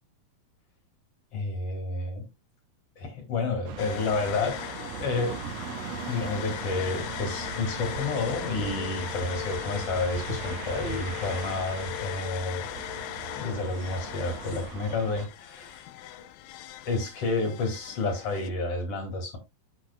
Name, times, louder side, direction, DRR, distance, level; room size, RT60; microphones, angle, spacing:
voice 1, 1.3-2.3 3.0-4.6 5.0-5.4 6.1-12.6 13.3-15.9 16.2-16.3 16.8-19.4, left 3 dB, 40° left, 3.1 m, -30 dB
sound 1, 3.6-15.3, right 8 dB, 85° right, 1.4 m, -39 dB
sound 2, 3.8-18.5, left 14 dB, 80° left, 2.0 m, -38 dB
8.3 x 7.6 x 2.3 m
omnidirectional pair, 4.5 m